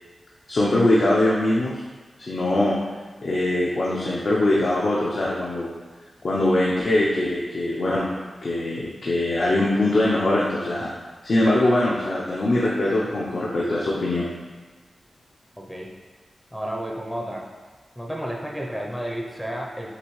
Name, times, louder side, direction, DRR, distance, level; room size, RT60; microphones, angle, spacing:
voice 1, 0.5-1.8 2.2-2.7 3.2-5.7 6.2-8.1 8.4-10.9 11.2-14.3, left 1 dB, 55° left, -5 dB, 0.6 m, -22 dB
voice 2, 16.5-17.4 18.0-20.0, equal, 5° left, -1 dB, 0.5 m, -31 dB
6.6 x 2.6 x 3.1 m, 1.4 s
wide cardioid pair, 140°, 0 cm